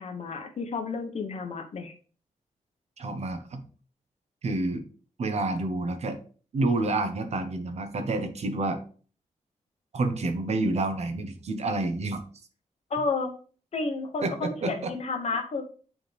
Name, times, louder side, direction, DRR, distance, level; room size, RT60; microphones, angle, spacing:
voice 1, 0.0-1.9 12.9-13.3 13.7-15.6, left 4 dB, 55° left, 4 dB, 1.0 m, -31 dB
voice 2, 3.0-3.7 4.4-4.8 5.2-6.2 6.5-8.8 9.9-12.2 14.2-14.9, right 2 dB, 55° right, 8 dB, 0.9 m, -29 dB
9.1 x 3.6 x 3.3 m, 0.41 s
wide cardioid pair, 165°, 13 cm